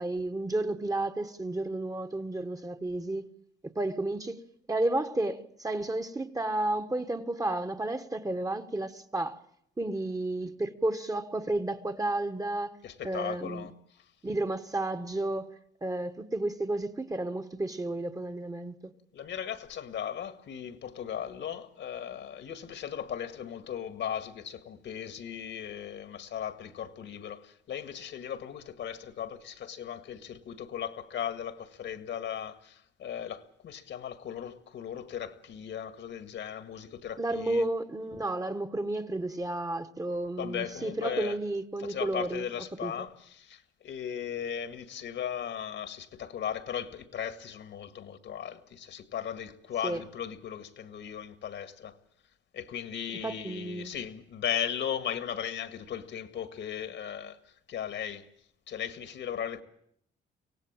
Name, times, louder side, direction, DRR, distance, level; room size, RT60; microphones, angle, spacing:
voice 1, 0.0-3.3 3.6-4.4 4.7-9.4 9.8-12.8 13.0-13.7 14.2-18.9 37.2-42.5 42.8-43.1 49.8-50.0 53.2-53.9, right 2 dB, 15° right, 1.4 m, -32 dB
voice 2, 12.8-14.0 19.1-37.7 40.4-41.4 41.8-52.0 52.5-58.3 58.7-59.6, left 9 dB, 70° left, 1.9 m, -37 dB
24.0 x 17.5 x 8.9 m
cardioid pair, 90°, 20 cm